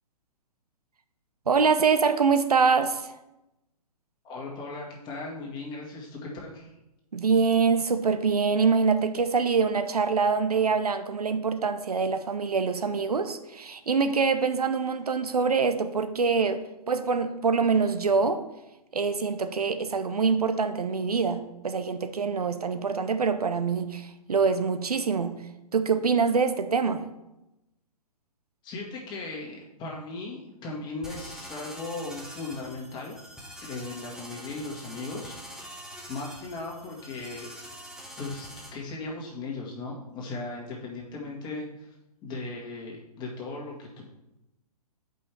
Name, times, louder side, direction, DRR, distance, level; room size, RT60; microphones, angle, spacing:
voice 1, 1.5-3.1 7.1-16.6 16.9-18.4 18.9-25.4 25.7-27.1, right 5 dB, 75° right, 9 dB, 0.7 m, -25 dB
voice 2, 4.2-6.7 28.6-33.1 33.7-35.4 36.1-37.5 38.2-41.9 42.2-44.1, left 3 dB, 20° left, -3 dB, 2.0 m, -37 dB
sound 1, 31.0-38.7, equal, 5° right, 1.3 m, -44 dB
7.3 x 5.4 x 4.7 m, 0.94 s
figure-of-eight pair, 120°, 20 cm